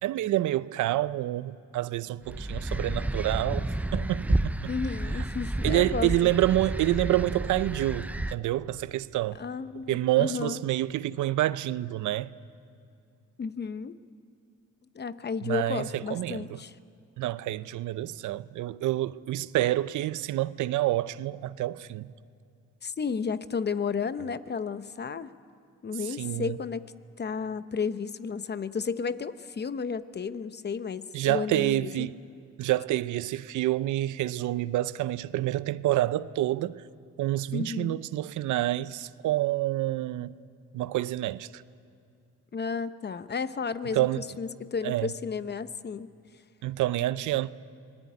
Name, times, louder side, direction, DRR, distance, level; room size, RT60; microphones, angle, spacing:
voice 1, 0.0-4.7 5.2-5.3 5.6-9.4 9.9-12.3 15.4-16.6 17.2-22.1 26.1-26.6 31.1-32.2 32.6-36.8 37.2-40.4 40.7-41.6 43.9-44.2 44.8-45.1 46.6-47.5, right 15 dB, 75° right, 0.6 m, -28 dB
sound 1, 2.3-8.4, right 1 dB, 5° right, 0.5 m, -31 dB
voice 2, 4.6-6.1 9.4-10.6 13.4-14.0 14.9-16.7 22.8-25.3 25.8-26.8 27.2-32.1 37.5-38.0 42.5-46.1, left 5 dB, 35° left, 0.9 m, -33 dB
24.5 x 20.0 x 9.6 m
cardioid pair, 90°, 30 cm